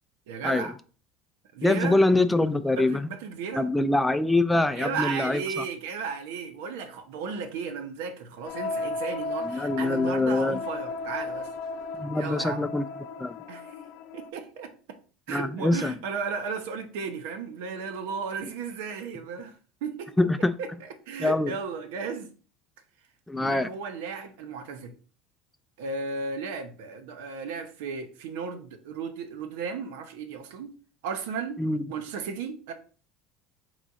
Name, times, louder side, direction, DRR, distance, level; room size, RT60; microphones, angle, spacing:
voice 1, 0.3-0.7 1.5-2.0 2.8-3.7 4.7-11.5 12.1-12.7 13.5-13.7 14.1-14.7 15.3-19.5 19.8-20.1 20.6-22.3 23.4-24.9 25.8-30.7 31.0-31.6 31.9-32.7, right 5 dB, 80° right, 0.7 m, -34 dB
voice 2, 1.6-3.1 3.5-5.6 9.4-10.6 12.0-12.9 13.2-13.4 15.3-15.9 18.4-18.5 20.2-20.6 21.2-21.5 23.3-23.7 31.6-31.8, left 2 dB, 10° left, 0.3 m, -24 dB
sound 1, 8.5-14.3, left 3 dB, 70° left, 0.4 m, -35 dB
3.6 x 3.0 x 4.0 m
supercardioid pair, 105°, 0 cm